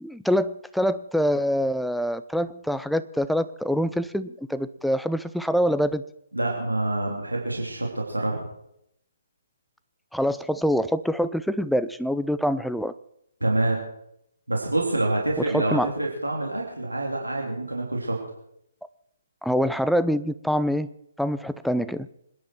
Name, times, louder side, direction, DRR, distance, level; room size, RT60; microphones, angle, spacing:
voice 1, 0.0-6.0 10.1-12.9 15.5-15.9 19.4-20.9 21.2-22.1, equal, ahead, 13 dB, 0.5 m, -25 dB
voice 2, 6.3-8.4 13.4-13.8 14.5-18.2, right 2 dB, 90° right, -1 dB, 3.3 m, -26 dB
26.0 x 10.5 x 4.6 m, 0.76 s
figure-of-eight pair, 135°, 0 cm